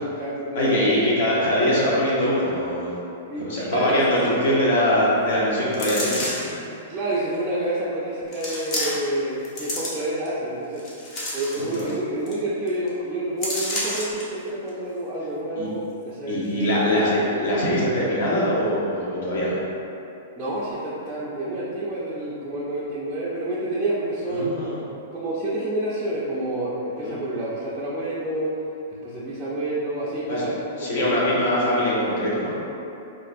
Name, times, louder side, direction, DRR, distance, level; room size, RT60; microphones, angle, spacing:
voice 1, 0.0-1.2 3.3-3.9 4.2-4.3 6.9-10.8 11.3-17.3 20.4-24.5 25.1-28.5 29.0-30.5 30.8-31.4 31.7-31.8, right 1 dB, 10° right, -10 dB, 0.4 m, -28 dB
voice 2, 0.5-2.9 3.3-6.3 11.6-11.8 15.6-15.7 16.3-19.6 24.3-24.8 27.0-27.2 30.3-30.5 30.8-32.6, left 1 dB, 60° left, -6 dB, 0.9 m, -22 dB
sound 1, 5.7-6.6 7.3-7.4 8.3-9.2 9.4-10.3 10.8-11.9 12.3-12.4 12.7-12.9 13.4-14.2 14.7-14.8, left 1 dB, 30° left, 0.7 m, -29 dB
4.3 x 2.4 x 2.5 m, 2.8 s
hypercardioid pair, 160°, 0 cm